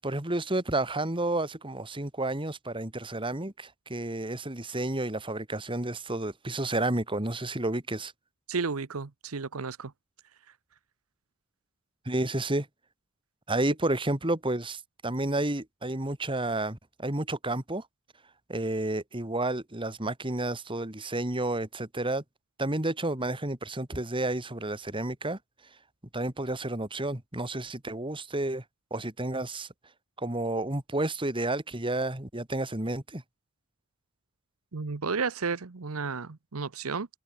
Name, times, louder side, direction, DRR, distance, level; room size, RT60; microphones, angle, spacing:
voice 1, 0.0-8.1 12.0-12.7 13.5-17.8 18.5-22.2 22.6-25.4 26.1-28.6 28.9-29.7 30.2-33.2, right 2 dB, 25° right, 2.5 m, -31 dB
voice 2, 8.5-9.9 34.7-37.1, right 4 dB, 80° right, 0.9 m, -32 dB
head